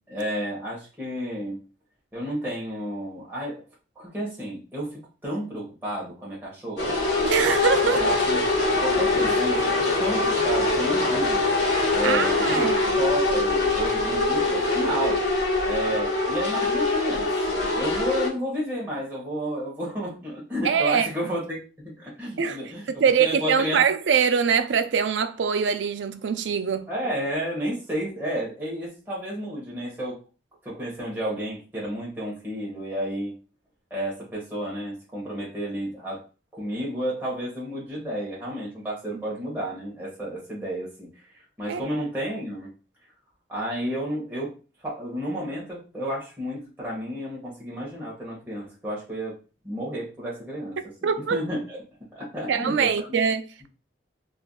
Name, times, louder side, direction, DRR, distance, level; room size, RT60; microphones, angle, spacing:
voice 1, 0.1-1.6 2.1-3.6 4.0-7.0 7.9-8.5 8.8-9.7 10.0-11.5 11.9-15.2 15.7-21.6 22.0-23.9 26.9-30.2 30.6-33.3 33.9-36.2 36.5-41.2 41.6-42.7 43.5-44.6 44.8-49.4 49.6-51.8 52.1-53.1, equal, 10° right, 1.1 m, -31 dB
sound 1, 6.8-18.3, left 2 dB, 80° left, 1.1 m, -23 dB
voice 2, 7.2-8.2 12.0-13.0 20.6-21.1 22.4-22.6 23.0-26.9 39.1-39.2 41.7-41.8 51.0-51.4 52.5-53.7, right 6 dB, 85° right, 0.4 m, -23 dB
3.2 x 2.5 x 2.2 m
head